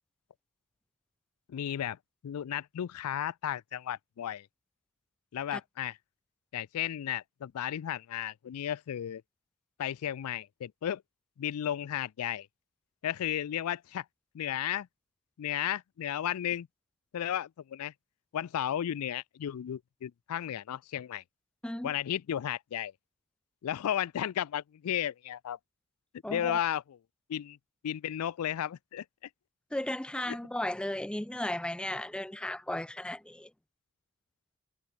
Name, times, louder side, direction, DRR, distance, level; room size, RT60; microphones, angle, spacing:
voice 1, 1.5-2.0 2.2-4.5 5.3-6.0 6.5-9.2 9.8-11.0 11.4-12.5 13.0-14.1 14.3-14.9 15.4-16.7 17.1-17.9 18.3-21.2 21.8-22.9 23.6-25.6 26.3-27.0 27.3-27.6 27.8-29.0 30.3-30.4, left 10 dB, 80° left, 0.4 m, -34 dB
voice 2, 26.2-26.6 29.7-33.5, left 1 dB, 5° left, 0.4 m, -35 dB
head